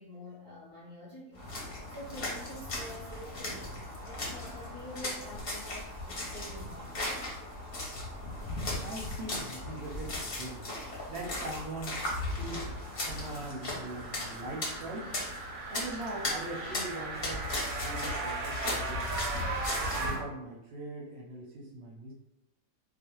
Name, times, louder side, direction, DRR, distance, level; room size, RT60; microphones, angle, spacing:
voice 1, 0.0-1.4 1.9-7.4, left 1 dB, 30° left, -7 dB, 0.4 m, -47 dB
sound 1, 1.3-20.2, left 2 dB, 50° left, 0.8 m, -37 dB
voice 2, 8.8-10.7 11.1-12.7 13.0-15.1 15.7-17.5 17.8-19.4 19.9-22.1, right 2 dB, 65° right, -3 dB, 0.7 m, -41 dB
sound 2, 11.8-20.1, right 3 dB, 85° right, 1.0 m, -39 dB
2.4 x 2.0 x 2.9 m, 0.87 s
omnidirectional pair, 1.4 m